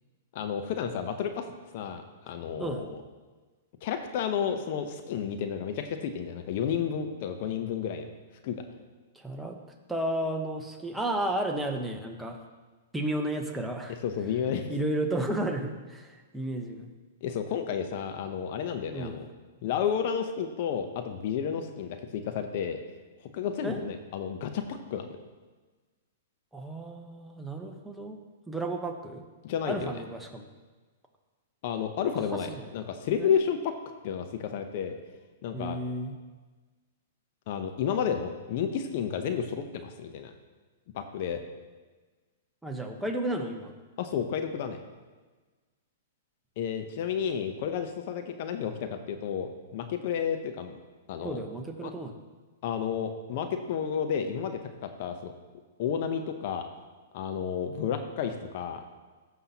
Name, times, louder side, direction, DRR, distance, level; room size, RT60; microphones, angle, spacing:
voice 1, 0.3-1.4 1.7-3.0 3.8-8.1 8.4-8.6 14.0-14.7 17.2-19.3 19.6-22.8 23.3-25.1 29.4-30.0 31.6-33.7 34.0-35.0 35.4-35.8 37.5-40.3 40.9-41.4 44.0-44.8 46.6-50.8 51.1-51.4 51.8-51.9 52.6-55.3 55.8-56.7 57.1-58.8, left 7 dB, 55° left, 7 dB, 0.7 m, -31 dB
voice 2, 9.1-9.6 9.9-12.4 12.9-14.0 14.7-16.9 18.9-19.2 23.6-23.8 26.5-28.2 28.5-29.2 29.7-30.5 32.3-32.6 33.2-33.3 35.5-36.2 42.6-43.7 51.2-52.2, right 1 dB, 5° right, 2 dB, 1.0 m, -33 dB
14.0 x 5.7 x 2.9 m, 1.3 s
hypercardioid pair, 120°, 0 cm